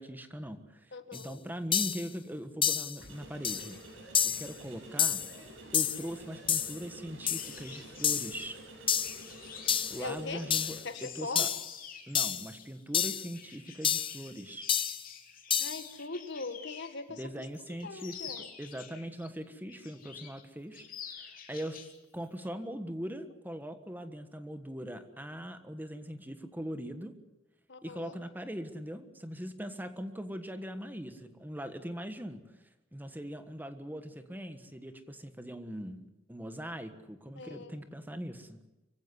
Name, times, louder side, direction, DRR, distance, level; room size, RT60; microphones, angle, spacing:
voice 1, 0.0-3.8 4.3-5.2 5.7-8.6 9.9-11.5 12.1-14.7 17.2-18.3 18.6-20.9 21.1-21.8 22.1-27.2 27.8-32.5 32.9-38.6, equal, 10° right, 9 dB, 1.4 m, -41 dB
voice 2, 0.9-1.4 10.0-10.4 10.8-11.5 15.6-17.2 17.8-18.5 27.7-28.2 37.3-37.8, left 3 dB, 60° left, 9 dB, 1.8 m, -40 dB
sound 1, 1.1-1.2 1.7-2.1 2.6-3.0 3.4-3.7 4.1-4.5 5.0-5.3 5.7-6.1 6.5-6.8 7.3-7.5 8.0-8.4 8.9-9.2 9.7-10.0 10.5-10.8 11.4-11.7 12.2-12.5 12.9-13.3 13.8-14.2 14.7-15.0 15.5-15.8, left 8 dB, 25° left, 0.7 m, -29 dB
sound 2, 3.0-10.8, right 1 dB, 80° right, 7.8 m, -50 dB
sound 3, 7.2-17.0 17.4-19.3 19.7-20.4 20.7-22.0 22.2-22.5, left 7 dB, 45° left, 3.1 m, -49 dB
25.0 x 16.0 x 9.8 m, 1.0 s
head